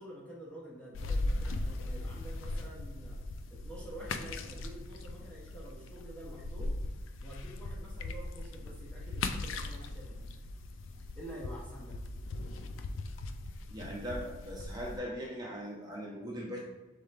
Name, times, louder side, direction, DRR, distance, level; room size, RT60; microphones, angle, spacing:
voice 1, 0.0-3.2 3.5-6.8 7.2-10.3 11.2-12.0, right 1 dB, 5° left, -5 dB, 0.8 m, -48 dB
sound 1, 0.9-15.0, left 2 dB, 80° left, 0.4 m, -39 dB
voice 2, 13.7-16.6, equal, 20° right, -3 dB, 0.8 m, -40 dB
4.1 x 3.6 x 3.3 m, 1.1 s
head